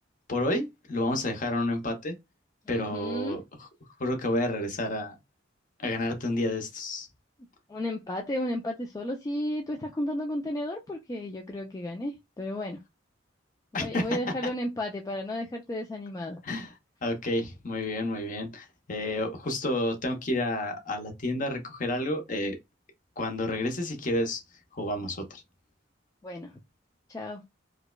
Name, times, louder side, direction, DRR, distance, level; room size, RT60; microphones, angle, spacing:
voice 1, 0.3-2.1 2.7-3.4 4.0-5.1 5.8-7.1 13.7-14.1 16.4-16.7 17.0-22.6 23.2-24.4 24.8-25.4, left 1 dB, 45° left, 0.8 m, -30 dB
voice 2, 2.7-3.4 7.7-12.8 13.7-16.4 26.2-26.5 27.1-27.4, left 1 dB, 20° left, 0.3 m, -33 dB
4.6 x 2.1 x 2.2 m
head